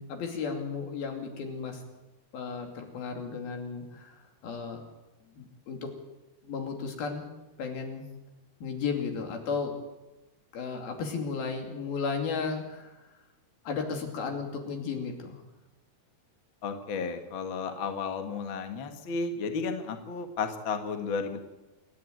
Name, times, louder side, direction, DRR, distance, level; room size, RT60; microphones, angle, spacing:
voice 1, 0.0-1.8 2.3-4.1 4.4-4.8 5.4-5.9 6.4-7.3 7.6-8.1 8.6-9.7 10.5-12.9 13.7-15.4, left 5 dB, 70° left, 4 dB, 4.4 m, -34 dB
voice 2, 16.6-21.4, left 5 dB, 50° left, 6 dB, 1.6 m, -33 dB
28.0 x 10.5 x 9.2 m, 1.0 s
omnidirectional pair, 4.5 m